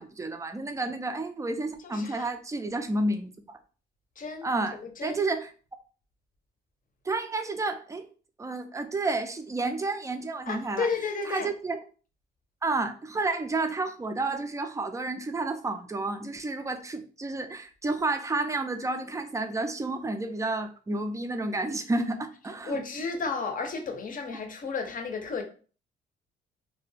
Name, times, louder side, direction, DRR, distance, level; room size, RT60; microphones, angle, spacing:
voice 1, 0.0-3.6 4.4-5.5 7.0-8.1 8.4-10.9 11.3-11.8 12.6-22.8, right 2 dB, 15° right, 0.4 m, -31 dB
voice 2, 1.8-2.3 4.2-5.2 10.5-11.5 22.6-25.4, left 4 dB, 45° left, 0.7 m, -33 dB
2.4 x 2.2 x 3.2 m
cardioid pair, 90°, 20 cm